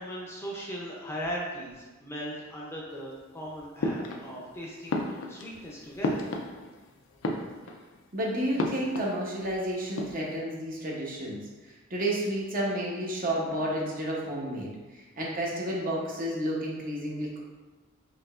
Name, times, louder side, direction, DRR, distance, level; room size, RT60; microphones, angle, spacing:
voice 1, 0.0-6.3, equal, 15° left, -4 dB, 0.5 m, -38 dB
sound 1, 3.8-4.5 4.9-6.9 7.1-8.0 8.6-9.6 9.8-10.4, left 2 dB, 85° left, 0.5 m, -33 dB
voice 2, 8.1-17.4, right 1 dB, 45° right, -3 dB, 0.8 m, -31 dB
4.9 x 2.8 x 2.4 m, 1.2 s
head